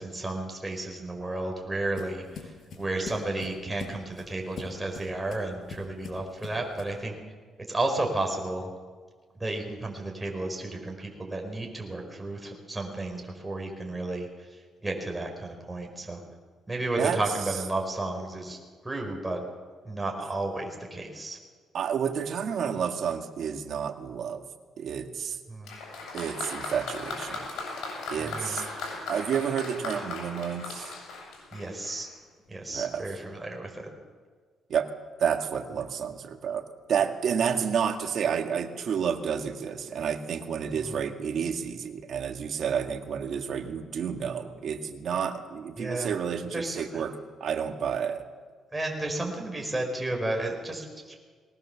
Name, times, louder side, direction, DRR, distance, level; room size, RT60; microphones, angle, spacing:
voice 1, 0.0-2.5 2.7-7.1 7.7-8.7 9.4-14.3 14.8-16.2 16.7-18.6 18.8-19.4 19.8-21.4 25.5-25.7 28.2-28.6 31.5-32.1 32.5-33.9 40.8-41.0 45.8-46.1 46.5-47.0 48.7-51.2, right 2 dB, 15° right, 1 dB, 5.0 m, -32 dB
sound 1, 1.0-7.0, left 5 dB, 60° left, 4.7 m, -44 dB
voice 2, 21.7-24.4 24.8-25.4 26.1-27.5 28.1-28.7 29.1-30.9 32.7-33.0 34.7-34.9 35.2-48.3, right 7 dB, 65° right, 6 dB, 1.9 m, -30 dB
Applause, 25.6-32.1 33.0-33.1, left 3 dB, 80° left, 7.3 m, -38 dB
20.5 x 19.0 x 7.1 m, 1.5 s
cardioid pair, 90°, 0 cm